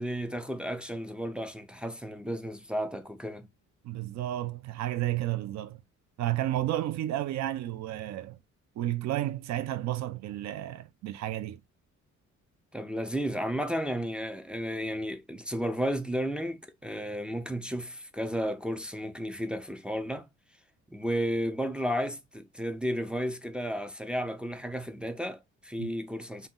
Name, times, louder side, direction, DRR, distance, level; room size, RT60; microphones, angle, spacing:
voice 1, 0.0-3.5 12.7-20.3 20.9-26.5, equal, 5° right, 0.3 m, -33 dB
voice 2, 3.8-5.8 6.2-8.4 8.8-11.6 25.8-25.9, right 14 dB, 65° right, 0.5 m, -32 dB
2.7 x 2.0 x 3.5 m
cardioid pair, 90°, 30 cm